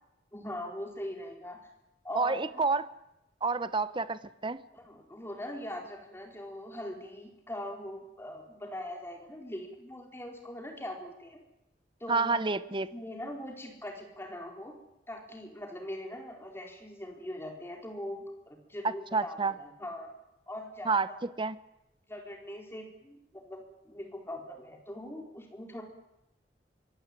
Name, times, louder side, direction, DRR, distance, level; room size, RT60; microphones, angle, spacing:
voice 1, 0.3-1.7 2.0-2.8 4.7-11.4 12.0-12.6 12.9-14.8 15.1-20.1 20.5-21.2 22.1-25.8, left 1 dB, 15° left, 2 dB, 4.4 m, -41 dB
voice 2, 2.1-2.9 3.4-4.6 12.1-12.9 18.8-19.5 20.9-21.1 21.4-21.6, right 4 dB, 30° right, 14 dB, 0.9 m, -29 dB
24.5 x 20.0 x 9.2 m, 0.88 s
head